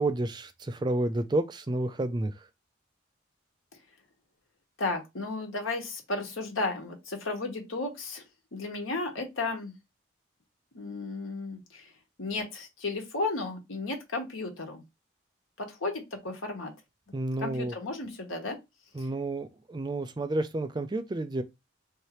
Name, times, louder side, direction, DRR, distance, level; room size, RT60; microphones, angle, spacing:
voice 1, 0.0-2.3 17.1-17.7 18.9-21.4, right 2 dB, 20° right, 0.3 m, -30 dB
voice 2, 4.8-8.2 8.5-9.7 10.7-11.9 12.2-14.8 15.6-16.7 17.4-18.6 19.0-19.1, left 3 dB, 85° left, 1.3 m, -34 dB
3.2 x 2.8 x 4.1 m
head